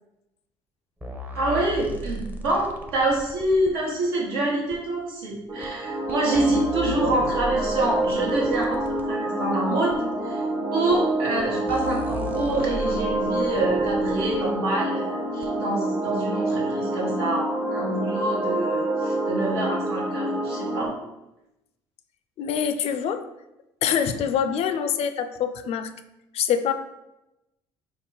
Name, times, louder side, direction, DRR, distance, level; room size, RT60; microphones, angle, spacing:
sound 1, 1.0-3.7 4.7-4.8 5.6-5.7 6.1-9.1 9.9-10.0 10.9-11.0 11.4-11.5 11.7-14.4 15.4-15.5, equal, 15° right, 0.6 m, -37 dB
voice 1, 1.4-10.4 10.7-20.9, right 1 dB, 85° right, -3 dB, 1.2 m, -26 dB
sound 2, 5.5-20.9, right 1 dB, 50° right, 1.3 m, -27 dB
voice 2, 22.4-23.3 23.8-25.9 26.3-26.7, left 8 dB, 55° left, 9 dB, 0.4 m, -25 dB
3.9 x 2.1 x 3.8 m, 0.92 s
supercardioid pair, 75°, 12 cm